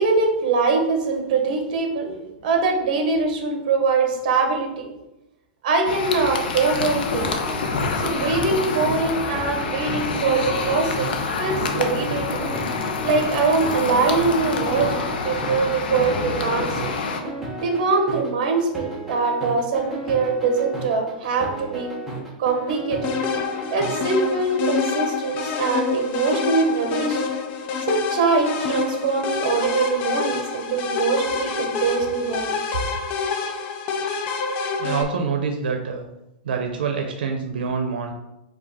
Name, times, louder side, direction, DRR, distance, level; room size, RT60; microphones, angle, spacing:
voice 1, 0.0-4.9 5.6-7.3 8.0-11.1 11.4-12.4 13.0-16.8 17.6-21.9 22.4-23.2 23.7-27.2 27.9-32.6, right 4 dB, 50° right, 4 dB, 0.9 m, -23 dB
sound 1, 5.9-17.2, left 4 dB, 80° left, 0.7 m, -27 dB
sound 2, 6.9-23.9, right 1 dB, 5° right, 0.8 m, -34 dB
sound 3, 23.0-35.0, left 5 dB, 30° left, 0.4 m, -27 dB
voice 2, 34.8-36.1 36.4-38.1, right 5 dB, 90° right, 3 dB, 0.6 m, -26 dB
4.8 x 2.4 x 4.0 m, 0.92 s
supercardioid pair, 170°, 5 cm